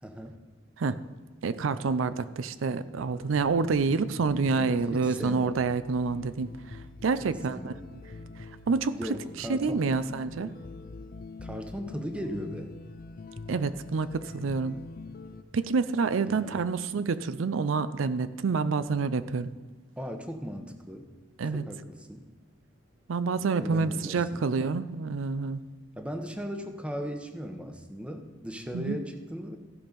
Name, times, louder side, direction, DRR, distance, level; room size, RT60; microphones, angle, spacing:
voice 1, 0.0-0.4 4.6-5.6 7.5-7.9 8.9-9.9 11.4-12.7 16.2-16.6 20.0-21.1 21.5-22.2 23.6-24.5 26.0-29.6, equal, 5° right, 5 dB, 0.8 m, -37 dB
voice 2, 1.4-6.5 7.0-7.7 8.7-9.0 9.4-10.5 13.5-14.8 15.5-19.5 21.4-21.6 23.1-25.6 28.7-29.0, right 4 dB, 90° right, 14 dB, 0.5 m, -28 dB
sound 1, 3.0-15.4, left 3 dB, 45° left, 0.4 m, -45 dB
15.5 x 5.4 x 5.2 m, 1.4 s
head